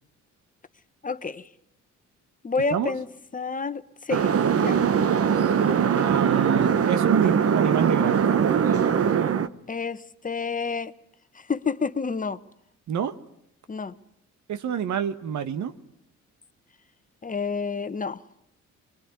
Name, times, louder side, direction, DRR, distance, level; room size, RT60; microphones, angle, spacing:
voice 1, 1.0-1.5 2.4-3.1 3.3-4.9 9.7-10.9 11.3-12.4 13.7-14.0 17.2-18.2, left 4 dB, 25° left, 1.2 m, -29 dB
sound 1, 4.1-9.5, right 7 dB, 50° right, 1.3 m, -21 dB
voice 2, 5.8-8.4 12.9-13.2 14.5-15.7, right 8 dB, 70° right, 1.6 m, -27 dB
23.5 x 22.5 x 9.7 m
cardioid pair, 90°, 30 cm